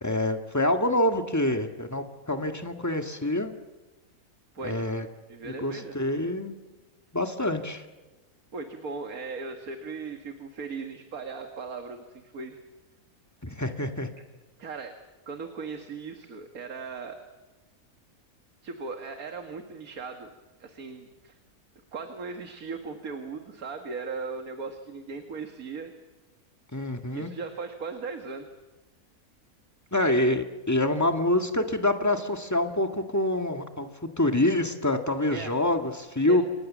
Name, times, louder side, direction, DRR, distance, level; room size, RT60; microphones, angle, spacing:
voice 1, 0.0-3.5 4.6-5.1 5.4-6.5 7.1-7.8 13.4-14.1 26.7-27.3 29.9-33.9 34.2-36.4, left 1 dB, 10° left, 6 dB, 1.7 m, -26 dB
voice 2, 5.3-6.0 8.5-12.6 14.6-14.9 15.3-17.2 18.6-20.3 20.6-21.4 21.9-25.9 27.1-28.5 35.3-35.5 36.3-36.4, right 4 dB, 75° right, 6 dB, 2.1 m, -38 dB
28.5 x 24.5 x 7.4 m, 1.1 s
omnidirectional pair, 1.5 m